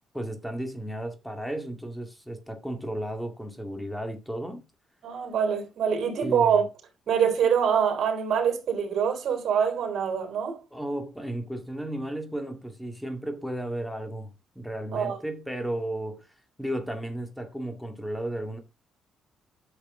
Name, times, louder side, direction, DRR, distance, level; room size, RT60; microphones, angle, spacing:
voice 1, 0.1-4.6 6.2-6.6 10.7-14.3 14.6-16.3 16.6-18.6, right 1 dB, 5° left, 2.1 m, -34 dB
voice 2, 5.0-6.7 7.1-10.6 14.9-15.2, right 7 dB, 60° right, 3.4 m, -25 dB
9.7 x 6.6 x 3.8 m
cardioid pair, 90°, 0 cm